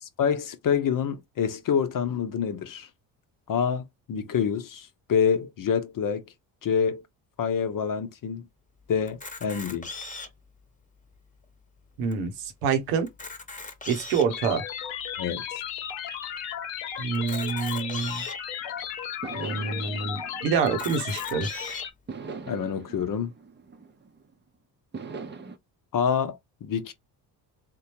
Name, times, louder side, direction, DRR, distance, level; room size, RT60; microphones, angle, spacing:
voice 1, 0.0-2.9 3.5-6.2 6.6-7.0 7.4-8.5 8.9-9.9 15.2-15.4 22.5-23.3 25.9-26.9, left 7 dB, 40° left, 0.8 m, -27 dB
Camera, 9.1-10.5 11.1-11.2 11.4-11.6 12.1-12.2 13.0-14.4 15.0-15.1 17.1-18.4 19.1-19.2 19.5-19.6 20.7-21.8, left 3 dB, 15° left, 1.0 m, -39 dB
voice 2, 12.0-13.1 13.9-14.6 17.0-18.2 19.3-21.5, right 6 dB, 80° right, 1.0 m, -27 dB
sound 1, 14.3-21.9, left 9 dB, 70° left, 0.9 m, -35 dB
sound 2, 18.6-18.7 19.2-21.5 22.1-24.3 24.9-25.6, right 4 dB, 20° right, 0.7 m, -41 dB
3.6 x 2.2 x 2.9 m
hypercardioid pair, 55°, 49 cm